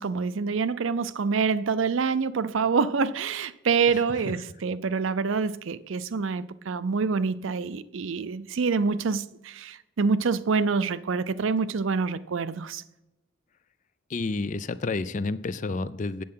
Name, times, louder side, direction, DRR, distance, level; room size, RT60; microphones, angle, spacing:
voice 1, 0.0-12.8, right 5 dB, 70° right, 0.5 m, -26 dB
voice 2, 3.9-4.2 14.1-16.2, left 3 dB, 35° left, 0.4 m, -30 dB
8.6 x 7.6 x 5.6 m
head